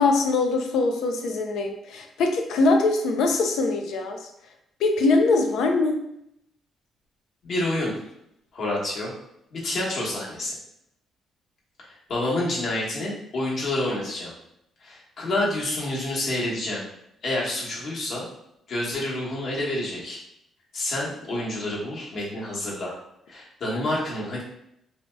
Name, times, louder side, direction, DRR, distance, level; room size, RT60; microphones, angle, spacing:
voice 1, 0.0-4.2 4.8-6.0, left 3 dB, 80° left, 4 dB, 0.4 m, -22 dB
voice 2, 7.4-7.9 8.5-9.1 9.5-10.5 11.8-14.3 14.8-16.8 17.2-18.3 18.7-20.2 20.7-23.0 23.3-24.4, left 1 dB, 60° left, -5 dB, 1.1 m, -28 dB
2.7 x 2.2 x 3.3 m, 0.78 s
cardioid pair, 90°, 0 cm